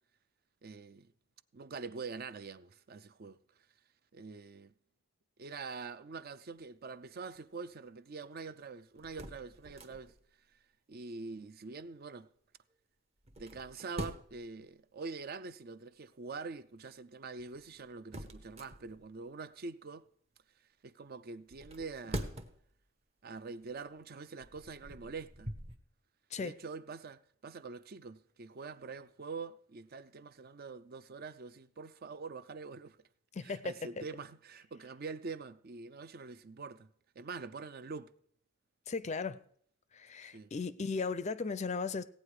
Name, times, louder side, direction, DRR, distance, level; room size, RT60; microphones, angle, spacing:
voice 1, 0.6-1.1 1.5-3.4 4.1-4.7 5.4-10.1 10.9-12.3 13.4-20.1 20.8-22.4 23.2-25.5 26.4-33.0 33.4-36.9 37.2-38.1 40.3-40.5, right 4 dB, 45° right, 0.5 m, -45 dB
sound 1, 8.9-10.3 13.2-14.5 17.4-19.2 21.5-22.7 23.3-23.5 24.2-25.8, equal, 30° right, 0.9 m, -44 dB
voice 2, 33.3-33.7 38.9-39.4 39.9-42.0, left 4 dB, 35° left, 0.5 m, -36 dB
16.5 x 8.7 x 4.9 m
head